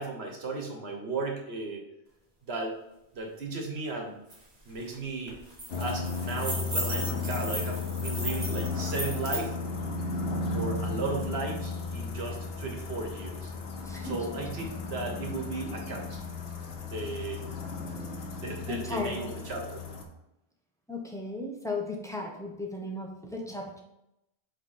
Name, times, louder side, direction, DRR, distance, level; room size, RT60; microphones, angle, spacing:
voice 1, 0.0-1.8 2.4-2.8 3.1-4.2 4.6-5.4 5.8-9.5 10.5-13.5 14.0-16.2 16.8-17.4 18.4-19.8, right 3 dB, 75° right, 2 dB, 1.5 m, -35 dB
sound 1, 4.3-4.4 4.7-4.9 5.3-9.4, right 1 dB, 40° right, 1.4 m, -36 dB
sound 2, 5.7-20.0, left 4 dB, 75° left, 1.2 m, -34 dB
voice 2, 13.9-14.2 14.6-14.7 18.7-19.3 20.9-23.8, left 2 dB, 5° left, 0 dB, 0.9 m, -35 dB
8.0 x 3.4 x 4.3 m, 0.86 s
omnidirectional pair, 1.1 m